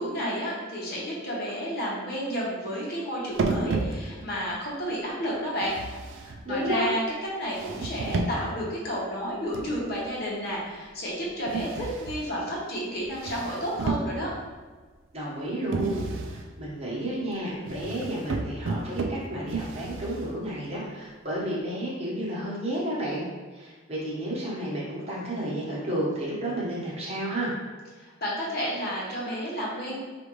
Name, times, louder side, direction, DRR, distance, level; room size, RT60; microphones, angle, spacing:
voice 1, 0.0-5.8 6.2-7.0 7.4-14.3 28.0-30.0, equal, 50° left, -4 dB, 1.0 m, -31 dB
sound 1, 3.4-4.4 5.6-6.8 7.5-8.6 9.5-10.0 11.5-12.4 13.0-14.5 15.7-16.5 17.7-20.5, right 3 dB, 60° right, 0.3 m, -32 dB
voice 2, 6.4-6.8 15.1-23.3 23.5-27.5, right 1 dB, 30° right, -6 dB, 1.1 m, -31 dB
4.9 x 2.5 x 3.0 m, 1.4 s
head